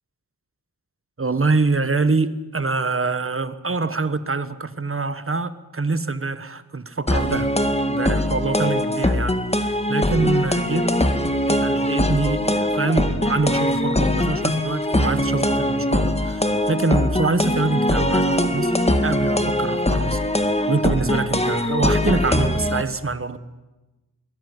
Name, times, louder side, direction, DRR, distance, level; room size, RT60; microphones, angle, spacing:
voice 1, 1.2-7.5 7.9-10.9 11.5-18.8 19.0-20.2 20.7-23.4, right 3 dB, 35° right, 13 dB, 1.4 m, -25 dB
sound 1, 7.1-22.8, left 1 dB, 15° left, 1.9 m, -21 dB
21.5 x 17.5 x 9.5 m, 1.1 s
wide cardioid pair, 55°, 37 cm